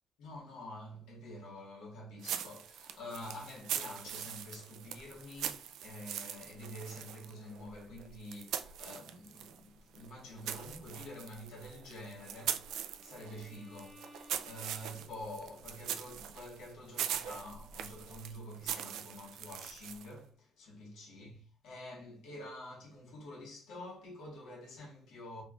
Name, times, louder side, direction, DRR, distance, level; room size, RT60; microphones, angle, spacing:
voice 1, 0.2-25.4, left 1 dB, 80° left, 1.7 m, -48 dB
sound 1, 2.2-9.6 9.9-20.2, right 9 dB, 80° right, 0.4 m, -42 dB
Bowed string instrument, 12.1-15.2, left 2 dB, 5° left, 0.8 m, -60 dB
3.5 x 3.3 x 2.5 m
cardioid pair, 110°, 0 cm